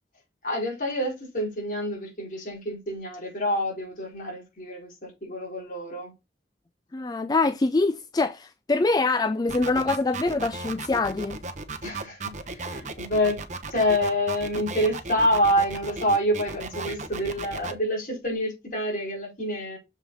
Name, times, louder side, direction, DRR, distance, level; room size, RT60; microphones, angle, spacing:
voice 1, 0.4-6.1 11.8-13.4 13.7-19.8, equal, 50° left, 5.1 m, -27 dB
voice 2, 6.9-11.4, left 3 dB, 20° left, 0.3 m, -24 dB
sound 1, 9.5-17.7, right 3 dB, 45° right, 1.0 m, -35 dB
7.1 x 5.7 x 4.1 m
head